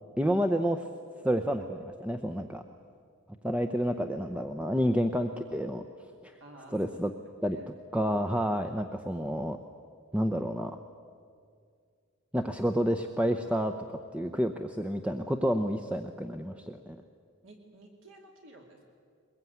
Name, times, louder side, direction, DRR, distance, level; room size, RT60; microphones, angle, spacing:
voice 1, 0.2-0.9 1.2-2.6 3.4-5.8 6.2-6.4 6.7-7.1 7.4-7.6 7.9-9.6 10.1-10.8 12.3-13.7 14.1-17.0, equal, 5° right, 5 dB, 0.7 m, -29 dB
voice 2, 6.4-7.2 7.4-7.7 17.4-18.8, right 1 dB, 60° right, 1 dB, 2.5 m, -52 dB
22.5 x 21.5 x 9.4 m, 2.2 s
head